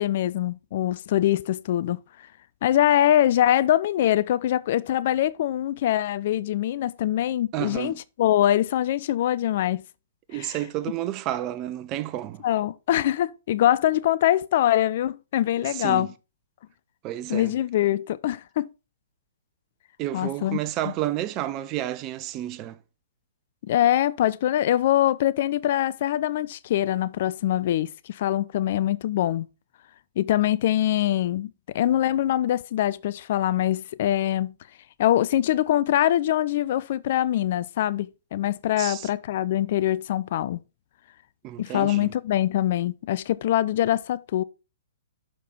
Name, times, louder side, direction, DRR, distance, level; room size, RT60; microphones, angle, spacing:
voice 1, 0.0-2.0 2.6-9.8 10.3-10.6 12.4-16.1 17.3-18.7 20.1-20.6 23.7-29.5 30.2-31.5 31.7-34.5 35.0-40.6 41.6-44.4, left 12 dB, 45° left, 0.3 m, -23 dB
voice 2, 7.5-8.0 10.3-12.4 15.6-16.1 17.0-17.5 20.0-22.8 38.8-39.1 41.4-42.1, right 13 dB, 30° right, 0.5 m, -31 dB
6.5 x 5.0 x 4.3 m
figure-of-eight pair, 115°, 0 cm